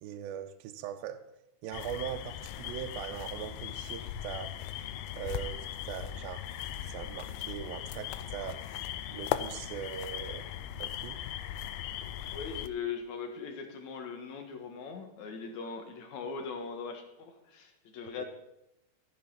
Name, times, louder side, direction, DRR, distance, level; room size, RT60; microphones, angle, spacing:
voice 1, 0.0-1.3 1.6-4.6 5.2-6.5 6.8-10.5 10.8-11.2 18.2-18.3, right 10 dB, 80° right, 8 dB, 2.4 m, -41 dB
sound 1, 1.7-12.7, left 11 dB, 80° left, 2.4 m, -38 dB
voice 2, 12.3-18.3, left 5 dB, 60° left, 4 dB, 2.3 m, -40 dB
14.0 x 7.2 x 5.7 m, 0.86 s
omnidirectional pair, 4.4 m